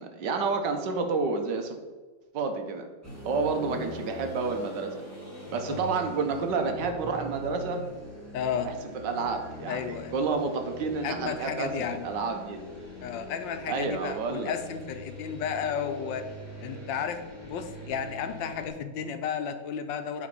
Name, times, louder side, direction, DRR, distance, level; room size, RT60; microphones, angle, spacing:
voice 1, 0.0-1.8 2.3-2.8 3.2-4.9 5.5-7.8 8.6-8.7 9.0-11.7 12.0-12.6 13.7-14.5, right 4 dB, 70° right, 5 dB, 1.5 m, -29 dB
sound 1, 3.0-18.7, left 1 dB, 10° right, 2.0 m, -42 dB
voice 2, 8.3-8.7 9.7-10.1 11.0-12.1 13.0-16.2 16.6-20.3, left 7 dB, 85° left, 8 dB, 1.4 m, -33 dB
8.7 x 3.9 x 5.3 m, 1.3 s
omnidirectional pair, 2.0 m